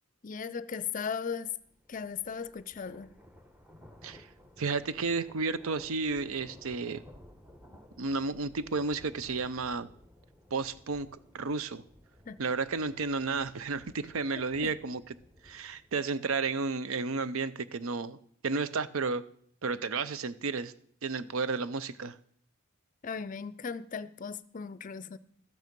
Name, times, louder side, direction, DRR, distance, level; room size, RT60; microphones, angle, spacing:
voice 1, 0.2-1.5 1.9-3.1 12.3-12.4 14.4-14.7 23.0-25.2, left 6 dB, 35° left, 0.5 m, -37 dB
sound 1, 1.5-16.0, left 1 dB, 5° right, 1.0 m, -56 dB
voice 2, 4.6-7.0 8.0-9.9 10.5-11.8 12.4-15.1 15.4-18.2 18.4-19.2 19.6-20.7 21.0-22.2, right 4 dB, 75° right, 0.6 m, -32 dB
13.0 x 9.3 x 5.2 m
head